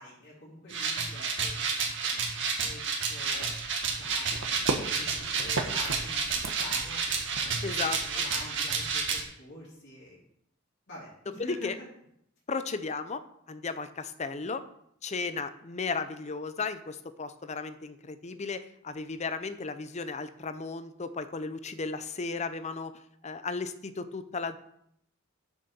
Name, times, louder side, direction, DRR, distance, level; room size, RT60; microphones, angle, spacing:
voice 1, 0.0-3.5 3.8-10.2 10.9-11.9, left 1 dB, 60° left, -6 dB, 3.5 m, -47 dB
sound 1, 0.7-9.2, right 5 dB, 65° right, 2.0 m, -31 dB
sound 2, 3.2-9.1, right 3 dB, 85° right, 1.2 m, -38 dB
voice 2, 7.6-8.2 11.4-11.8 12.5-14.6 15.0-22.9 23.2-24.6, left 4 dB, 35° left, 11 dB, 0.6 m, -35 dB
7.3 x 6.8 x 6.9 m, 0.73 s
head